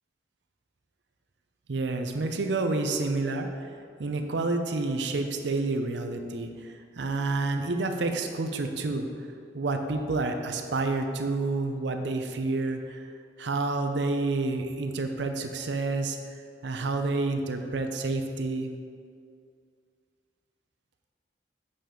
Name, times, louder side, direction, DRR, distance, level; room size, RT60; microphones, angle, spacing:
voice 1, 1.7-3.7 4.0-9.1 9.5-13.1 13.4-16.2 16.6-18.7, right 3 dB, 75° right, 6 dB, 0.6 m, -29 dB
6.8 x 5.5 x 3.8 m, 2.3 s
head